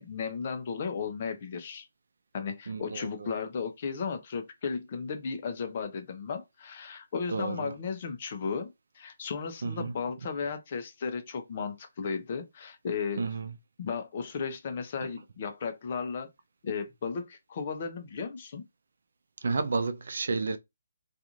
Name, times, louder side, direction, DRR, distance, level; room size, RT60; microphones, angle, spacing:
voice 1, 0.0-1.9 2.3-13.2 13.8-16.3 16.6-18.6, left 5 dB, 40° left, 0.6 m, -35 dB
voice 2, 2.7-3.3 7.3-7.7 9.6-9.9 13.2-13.5 19.4-20.6, right 4 dB, 65° right, 0.5 m, -31 dB
2.5 x 2.5 x 2.9 m
hypercardioid pair, 160°, 0 cm